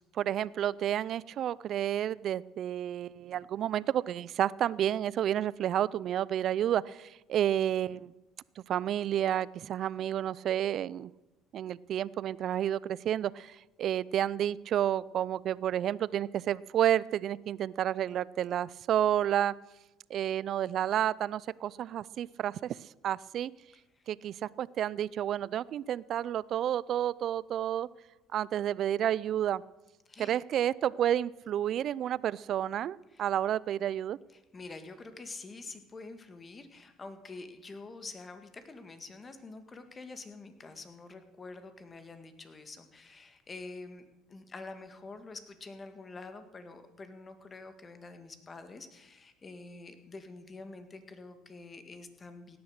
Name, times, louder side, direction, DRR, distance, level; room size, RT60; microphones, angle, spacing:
voice 1, 0.1-8.1 8.6-11.1 11.5-19.5 20.1-22.8 23.0-23.5 24.1-27.9 28.3-29.6 30.2-34.2, right 10 dB, 55° right, 21 dB, 0.4 m, -30 dB
voice 2, 34.3-52.6, left 3 dB, 25° left, 8 dB, 1.8 m, -47 dB
17.0 x 10.5 x 6.6 m, 1.0 s
cardioid pair, 105°, 0 cm